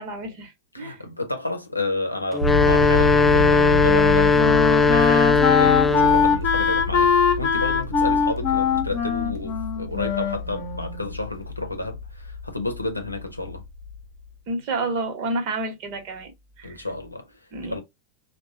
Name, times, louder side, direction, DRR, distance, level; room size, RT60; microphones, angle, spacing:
voice 1, 0.0-1.0 14.5-16.3 16.6-16.8 17.5-17.8, right 2 dB, 45° right, 1.1 m, -30 dB
voice 2, 0.7-7.1 7.4-13.6 16.6-17.3 17.7-17.8, left 2 dB, 85° left, 0.7 m, -31 dB
sound 1, 2.3-6.3, left 4 dB, 10° left, 0.4 m, -18 dB
sound 2, 2.4-14.3, left 2 dB, 60° right, 0.4 m, -30 dB
Wind instrument woodwind instrument, 3.8-11.1, left 6 dB, 40° left, 0.8 m, -22 dB
3.5 x 2.2 x 2.7 m
figure-of-eight pair, 90°, 0 cm